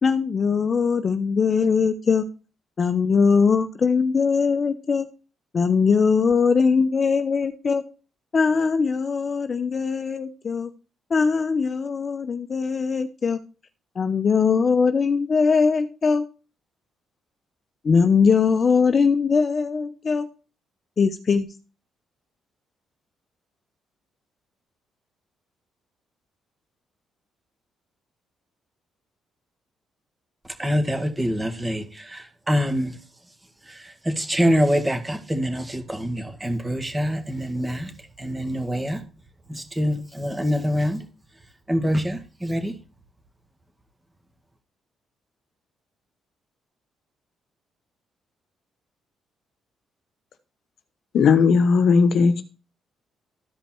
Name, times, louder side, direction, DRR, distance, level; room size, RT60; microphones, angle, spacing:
voice 1, 0.0-2.2 2.8-5.1 5.5-7.8 8.3-10.7 11.1-13.4 14.0-16.2 17.8-20.3 21.0-21.5, left 5 dB, 40° left, 0.8 m, -21 dB
voice 2, 30.6-32.9 34.1-37.9 38.2-39.0 39.5-41.0 41.7-42.7, equal, 15° right, 2.0 m, -25 dB
voice 3, 51.1-52.4, left 5 dB, 65° left, 1.1 m, -17 dB
13.5 x 5.2 x 4.5 m
cardioid pair, 90°, 0 cm